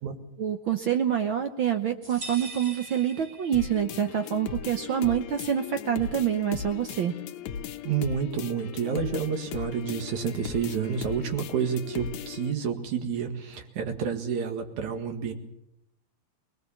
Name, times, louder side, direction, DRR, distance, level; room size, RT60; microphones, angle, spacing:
voice 1, 0.4-7.1, right 9 dB, 60° right, 6 dB, 1.3 m, -26 dB
sound 1, 2.0-4.0, right 2 dB, 35° right, 4.2 m, -42 dB
sound 2, 3.5-12.5, left 8 dB, 80° left, 2.3 m, -38 dB
voice 2, 7.8-15.3, right 7 dB, 85° right, 5 dB, 3.3 m, -29 dB
21.0 x 20.5 x 7.1 m, 0.85 s
omnidirectional pair, 3.3 m